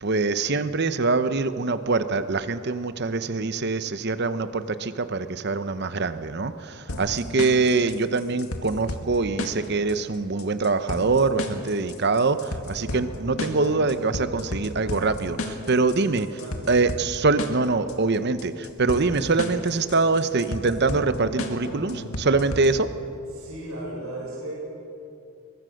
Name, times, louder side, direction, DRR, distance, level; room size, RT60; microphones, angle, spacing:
voice 1, 0.0-16.3 16.7-22.9, right 3 dB, 50° right, 12 dB, 0.8 m, -24 dB
sound 1, 6.9-22.9, left 1 dB, 75° left, 2.0 m, -34 dB
voice 2, 16.3-16.7 23.3-24.5, right 1 dB, 80° right, -5 dB, 7.0 m, -35 dB
22.0 x 22.0 x 6.5 m, 2.7 s
head